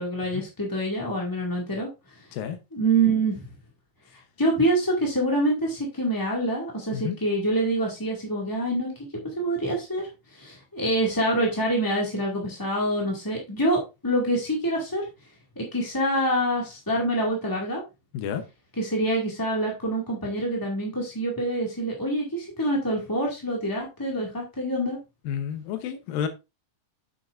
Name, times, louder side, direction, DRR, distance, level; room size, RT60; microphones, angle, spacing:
voice 1, 0.0-1.9 2.1-2.2 2.7-3.5 4.4-8.9 9.3-15.1 15.5-17.8 18.8-25.0, right 1 dB, 10° left, -2 dB, 1.1 m, -26 dB
voice 2, 25.3-26.3, left 8 dB, 85° left, 8 dB, 2.7 m, -30 dB
9.0 x 7.6 x 2.5 m, 0.25 s
omnidirectional pair, 4.0 m